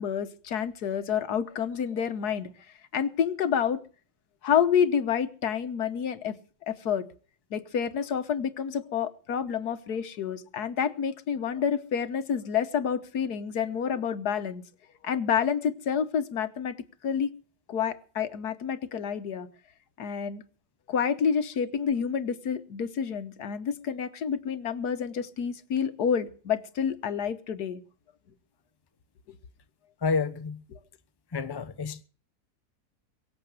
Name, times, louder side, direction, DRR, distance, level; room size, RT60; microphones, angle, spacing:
voice 1, 0.0-2.5 2.9-3.8 4.4-6.4 6.7-7.0 7.5-14.6 15.0-16.7 17.0-17.3 17.7-19.5 20.0-20.4 20.9-27.8 29.3-29.4 30.7-30.8, left 7 dB, 80° left, 1.6 m, -28 dB
voice 2, 30.0-30.6 31.3-32.0, left 4 dB, 20° left, 0.8 m, -29 dB
23.5 x 7.8 x 6.4 m
omnidirectional pair, 1.7 m